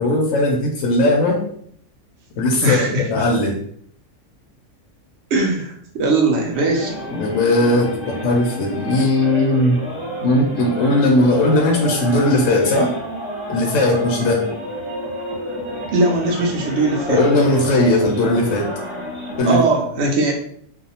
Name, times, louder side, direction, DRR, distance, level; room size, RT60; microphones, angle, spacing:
voice 1, 0.0-1.4 2.4-3.6 7.1-9.8 10.2-12.9 13.5-14.4 17.1-18.7 19.4-19.6, left 1 dB, 70° left, 1 dB, 0.8 m, -18 dB
voice 2, 2.6-3.1 5.3-6.9 15.9-17.2 19.4-20.3, right 2 dB, 65° right, 0 dB, 0.7 m, -19 dB
sound 1, 6.5-19.4, equal, 10° right, 0.8 m, -30 dB
2.6 x 2.0 x 2.8 m, 0.63 s
omnidirectional pair, 1.6 m